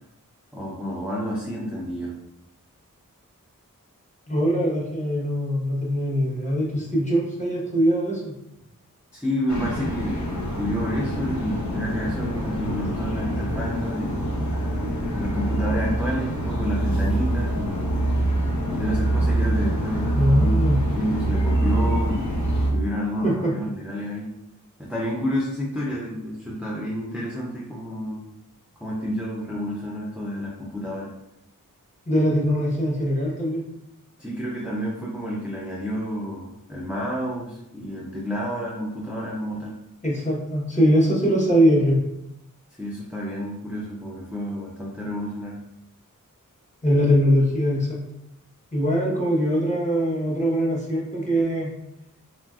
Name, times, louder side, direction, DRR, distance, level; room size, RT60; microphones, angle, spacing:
voice 1, 0.5-2.1 9.1-14.2 15.1-18.0 18.7-20.7 20.9-22.4 22.7-24.3 24.8-28.2 28.8-31.1 34.2-39.7 42.8-45.6, equal, 5° right, -5 dB, 0.5 m, -30 dB
voice 2, 4.3-8.3 20.1-20.8 23.2-23.5 32.1-33.7 40.0-42.0 46.8-48.0 48.7-51.7, equal, 20° left, -5 dB, 1.0 m, -22 dB
sound 1, 9.5-22.7, right 1 dB, 60° left, 0.7 m, -25 dB
3.0 x 2.5 x 2.4 m, 0.81 s
wide cardioid pair, 60°, 33 cm